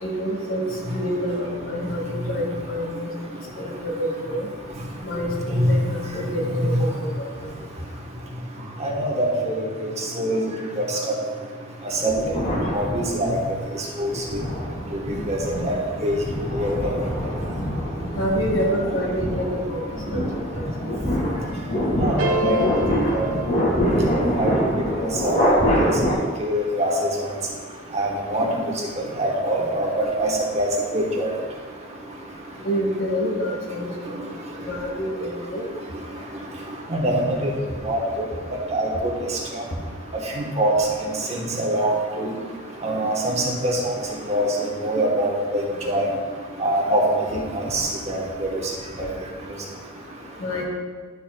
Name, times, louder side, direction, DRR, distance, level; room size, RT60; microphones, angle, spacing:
voice 1, 0.0-3.1 3.6-4.5 5.0-7.1 18.2-19.8 20.1-20.2 20.5-21.0 32.6-33.9 34.2-34.3 34.6-35.6 50.4-50.7, equal, 70° left, -1 dB, 1.8 m, -27 dB
voice 2, 8.8-9.5 10.2-10.4 10.8-11.2 12.0-12.1 12.7-13.4 14.0-14.1 15.3-15.4 15.6-15.7 16.0-16.2 16.5-16.9 22.0-22.6 23.1-23.3 24.4-24.5 25.0-25.5 25.8-25.9 26.4-26.9 27.9-28.5 29.2-31.3 36.9-37.5 37.8-38.3 38.7-39.1 39.5-39.6 40.4-40.7 41.0-42.3 42.8-43.9 44.3-44.5 44.8-46.0 46.6-47.0 47.5-48.5 49.0-49.1, right 1 dB, 30° right, -1 dB, 1.1 m, -23 dB
sound 1, 12.1-13.5 14.1-26.1, equal, 35° left, 1.8 m, -25 dB
sound 2, 22.2-24.4, equal, 75° right, 1.2 m, -28 dB
11.0 x 7.4 x 2.2 m, 1.5 s
head